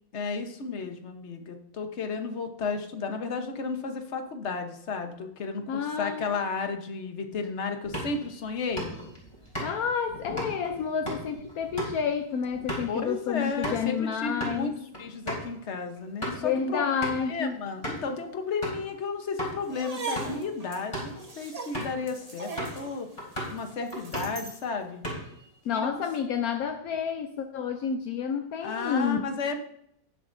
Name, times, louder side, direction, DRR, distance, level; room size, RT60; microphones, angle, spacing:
voice 1, 0.1-8.9 12.9-16.8 17.3-23.1 23.5-25.0 25.7-26.0 28.6-29.6, left 4 dB, 45° left, 5 dB, 1.1 m, -33 dB
voice 2, 5.7-6.3 9.6-14.8 16.4-17.6 25.6-29.2, left 7 dB, 70° left, 6 dB, 0.8 m, -29 dB
sound 1, 7.8-13.9 14.3-14.6 14.9-15.0 15.3-15.5 16.0-16.5 17.0-17.3 17.8-18.1 18.6-18.9 19.4-19.6 20.0-20.4 20.8-21.2 21.7-22.0 22.6-22.9 23.2-23.6 23.9-24.5 24.8-25.5, equal, 15° left, 3.5 m, -36 dB
sound 2, 19.7-24.7, right 4 dB, 25° right, 0.9 m, -39 dB
18.0 x 7.3 x 2.6 m, 0.73 s
omnidirectional pair, 2.2 m